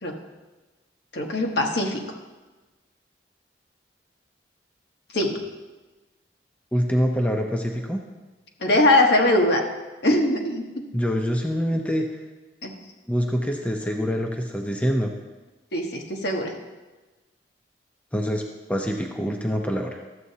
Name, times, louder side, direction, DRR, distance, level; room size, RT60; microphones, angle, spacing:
voice 1, 1.1-2.0 5.1-5.4 8.6-9.6 10.0-10.7 12.6-12.7 15.7-16.5, left 1 dB, 65° left, 1 dB, 1.1 m, -21 dB
voice 2, 6.7-8.0 10.9-12.0 13.1-15.1 18.1-18.4 18.7-20.0, equal, 10° left, 2 dB, 0.6 m, -25 dB
12.5 x 7.6 x 2.8 m, 1.2 s
head